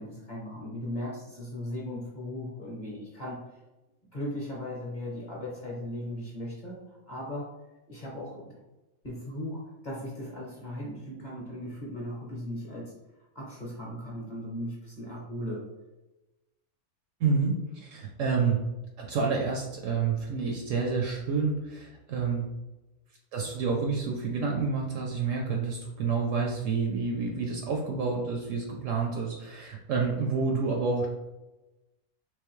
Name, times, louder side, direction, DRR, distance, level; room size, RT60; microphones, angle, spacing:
voice 1, 0.0-3.5 4.1-7.5 7.9-8.5 9.0-12.9 13.3-15.6, left 1 dB, 35° left, -5 dB, 0.8 m, -37 dB
voice 2, 17.2-18.6 19.0-22.5 23.3-31.1, right 4 dB, 70° right, 0 dB, 0.8 m, -29 dB
3.6 x 2.9 x 3.1 m, 1.0 s
omnidirectional pair, 1.6 m